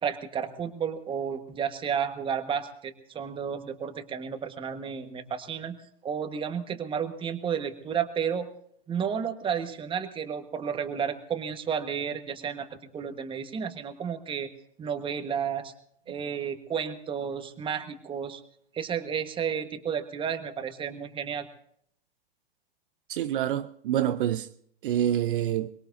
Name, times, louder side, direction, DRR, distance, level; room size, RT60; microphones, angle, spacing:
voice 1, 0.0-5.8 6.0-8.5 8.9-12.7 12.9-14.5 14.8-15.7 16.1-18.4 18.7-21.5, right 7 dB, 15° right, 1.4 m, -32 dB
voice 2, 23.1-24.5 24.8-25.7, right 11 dB, 60° right, 0.7 m, -27 dB
23.5 x 21.5 x 2.7 m
hypercardioid pair, 125°, 31 cm